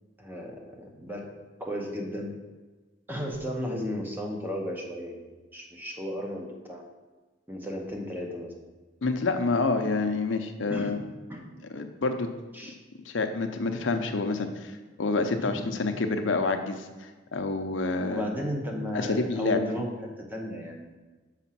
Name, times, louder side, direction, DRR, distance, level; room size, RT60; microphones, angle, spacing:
voice 1, 0.2-1.3 1.6-2.3 3.1-6.8 7.5-8.5 10.7-11.0 11.3-11.5 12.5-12.7 15.4-15.7 18.1-21.0, equal, 10° right, 0 dB, 1.0 m, -34 dB
voice 2, 9.0-11.0 11.7-12.3 12.6-12.7 13.0-18.2 18.9-19.6, left 3 dB, 80° left, 6 dB, 0.7 m, -28 dB
6.2 x 5.0 x 5.8 m, 1.3 s
head